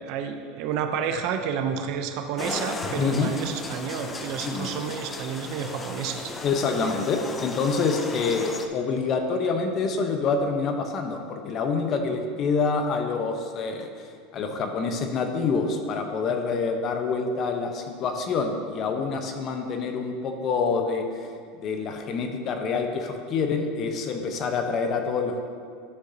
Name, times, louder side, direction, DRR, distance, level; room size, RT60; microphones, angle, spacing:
voice 1, 0.1-6.3, right 7 dB, 60° right, 7 dB, 0.7 m, -30 dB
sound 1, 2.4-8.7, left 2 dB, 20° left, 0.7 m, -36 dB
voice 2, 2.9-3.3 4.4-4.7 6.4-13.9 14.3-21.0 21.6-25.4, left 4 dB, 45° left, 5 dB, 0.9 m, -26 dB
11.0 x 6.4 x 2.8 m, 2.1 s
hypercardioid pair, 100°, 0 cm